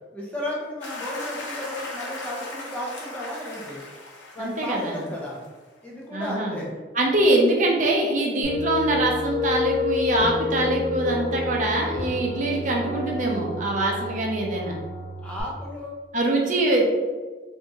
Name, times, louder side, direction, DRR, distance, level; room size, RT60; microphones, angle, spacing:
voice 1, 0.1-3.8 4.3-5.4 5.8-6.7 15.2-16.0, left 1 dB, 10° left, -4 dB, 0.5 m, -33 dB
sound 1, 0.8-5.5, left 2 dB, 85° left, 0.8 m, -37 dB
voice 2, 4.4-5.0 6.1-6.6 6.9-14.8 16.1-16.8, right 1 dB, 45° right, -1 dB, 0.6 m, -23 dB
sound 2, 8.4-15.4, left 4 dB, 45° left, 0.9 m, -30 dB
2.8 x 2.6 x 3.5 m, 1.3 s
head